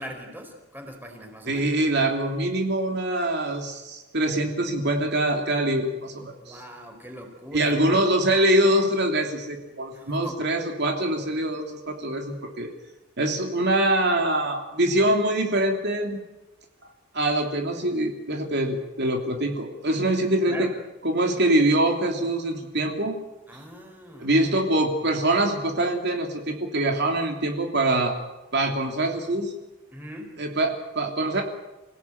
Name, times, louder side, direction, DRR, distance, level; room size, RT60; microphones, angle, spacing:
voice 1, 0.0-1.7 6.4-7.8 9.9-10.4 20.5-20.7 23.5-24.3 29.9-30.4, equal, 10° right, 4 dB, 5.0 m, -40 dB
voice 2, 1.5-6.6 7.5-12.7 13.2-16.2 17.1-20.7 21.0-23.1 24.2-28.1 28.5-29.5 30.4-31.4, right 1 dB, 55° right, 3 dB, 3.1 m, -24 dB
28.0 x 17.5 x 9.4 m, 1.0 s
head